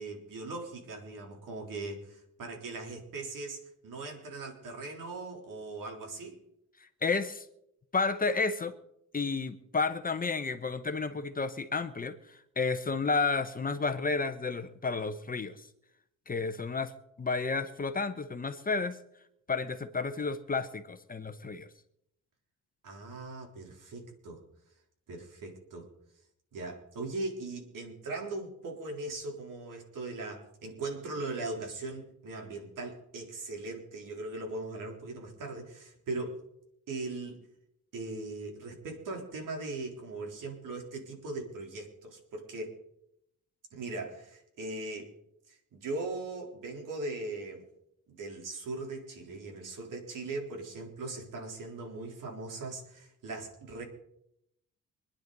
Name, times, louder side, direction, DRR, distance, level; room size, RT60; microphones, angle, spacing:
voice 1, 0.0-6.4 22.8-24.4 25.1-25.9 26.5-36.4 36.9-37.4 37.9-42.8 43.7-45.1 45.5-47.6 48.1-53.8, right 2 dB, 70° right, 2 dB, 3.8 m, -39 dB
voice 2, 7.0-7.5 7.9-8.7 9.1-15.6 16.3-16.9 17.2-19.0 19.5-21.7, left 4 dB, 25° left, 9 dB, 0.9 m, -31 dB
25.5 x 10.0 x 4.1 m, 0.78 s
cardioid pair, 115°, 33 cm